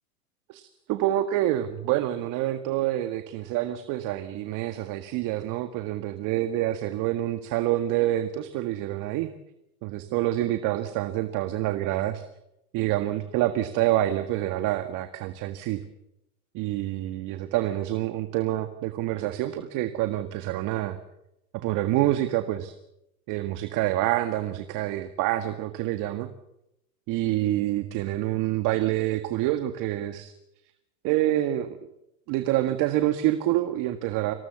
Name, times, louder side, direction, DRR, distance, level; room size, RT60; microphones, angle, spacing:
voice 1, 0.9-9.3 9.8-12.2 12.7-15.8 16.5-21.0 21.5-22.8 23.3-26.3 27.1-30.3 31.0-31.9 32.3-34.3, right 14 dB, 45° right, 9 dB, 1.9 m, -27 dB
26.5 x 18.0 x 7.2 m, 0.84 s
hypercardioid pair, 115°, 45 cm